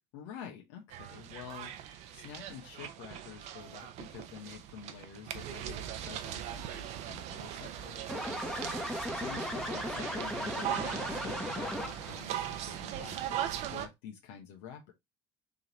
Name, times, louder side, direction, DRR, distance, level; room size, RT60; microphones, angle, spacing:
voice 1, 0.1-1.7 2.1-8.0 9.1-14.9, left 8 dB, 85° left, 1.1 m, -48 dB
sound 1, 0.9-13.9, right 11 dB, 65° right, 0.7 m, -40 dB
sound 2, 8.1-12.2, left 1 dB, 5° left, 1.0 m, -36 dB
3.7 x 3.0 x 4.0 m
supercardioid pair, 95°, 13 cm